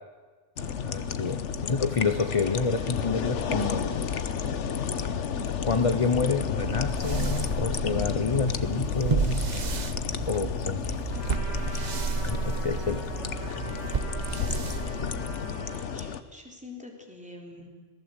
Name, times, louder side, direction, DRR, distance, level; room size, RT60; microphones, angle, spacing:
sound 1, 0.6-16.2, left 7 dB, 80° left, 1.3 m, -32 dB
voice 1, 0.6-4.0 5.6-9.5 10.3-10.8 12.3-13.0, left 4 dB, 30° left, 9 dB, 1.0 m, -28 dB
sound 2, 6.6-15.5, right 5 dB, 40° right, 0.9 m, -32 dB
voice 2, 10.9-11.8 14.7-17.7, left 1 dB, 5° right, 0 dB, 4.1 m, -47 dB
Trumpet, 11.1-16.0, equal, 15° left, 7.5 m, -43 dB
26.5 x 18.5 x 8.2 m, 1.4 s
omnidirectional pair, 1.2 m